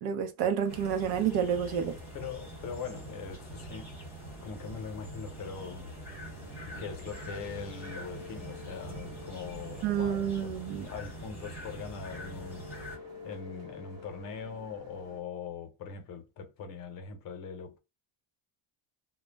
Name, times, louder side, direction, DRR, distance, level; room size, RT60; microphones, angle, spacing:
voice 1, 0.0-1.9 9.8-10.9, right 8 dB, 90° right, 0.7 m, -29 dB
sound 1, 0.6-15.2, left 2 dB, 50° right, 1.1 m, -50 dB
sound 2, 0.7-13.0, right 1 dB, 5° right, 0.5 m, -44 dB
voice 2, 2.1-3.9 4.4-6.0 6.7-17.8, left 5 dB, 45° left, 0.7 m, -42 dB
2.2 x 2.1 x 3.2 m
cardioid pair, 170°, 48 cm